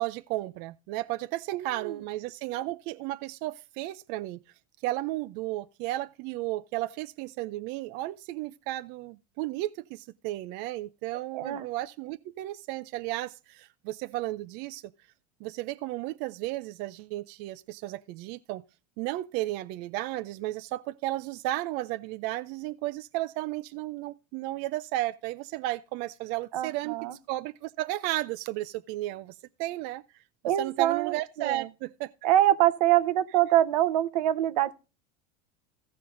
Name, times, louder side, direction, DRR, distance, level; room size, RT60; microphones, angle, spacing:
voice 1, 0.0-4.4 4.8-14.9 15.4-18.6 19.0-27.0 27.3-30.0 30.6-32.1, right 16 dB, 55° right, 0.5 m, -34 dB
voice 2, 1.5-2.0 11.3-11.7 26.5-27.2 30.4-31.7 32.2-34.7, right 13 dB, 85° right, 0.9 m, -25 dB
15.5 x 5.3 x 3.8 m
supercardioid pair, 120°, 20 cm